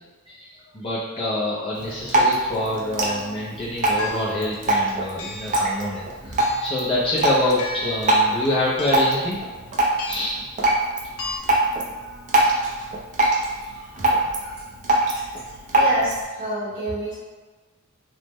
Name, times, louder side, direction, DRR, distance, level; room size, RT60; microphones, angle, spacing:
voice 1, 0.7-9.5 10.1-10.4 12.1-12.6 13.3-13.4 13.7-13.8 14.4-14.6, left 1 dB, 25° left, -7 dB, 0.4 m, -26 dB
Drip, 1.7-16.2, right 1 dB, 35° right, 0.5 m, -24 dB
sound 1, 3.0-3.2 4.0-4.5 5.2-5.6 6.4-6.8 7.6-8.1 8.8-9.2 10.0-10.4 11.2-11.4, left 2 dB, 80° left, 0.5 m, -34 dB
voice 2, 15.7-17.1, equal, 65° right, -16 dB, 1.3 m, -27 dB
3.4 x 2.0 x 3.0 m, 1.3 s
head